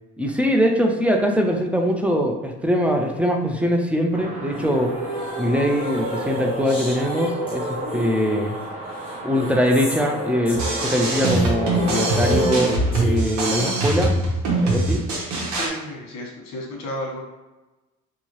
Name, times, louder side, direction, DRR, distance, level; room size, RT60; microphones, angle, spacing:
voice 1, 0.2-4.9 5.4-8.5 9.2-14.1 14.6-15.0, equal, 5° right, 2 dB, 0.3 m, -22 dB
sound 1, 4.1-12.4, right 2 dB, 25° right, 0.7 m, -35 dB
sound 2, 4.5-13.5, equal, 15° left, 0.9 m, -30 dB
sound 3, 10.5-15.7, right 2 dB, 65° right, 1.1 m, -23 dB
voice 2, 15.6-17.2, equal, 60° left, -2 dB, 1.1 m, -32 dB
2.8 x 2.7 x 3.0 m, 1.1 s
cardioid pair, 105°, 30 cm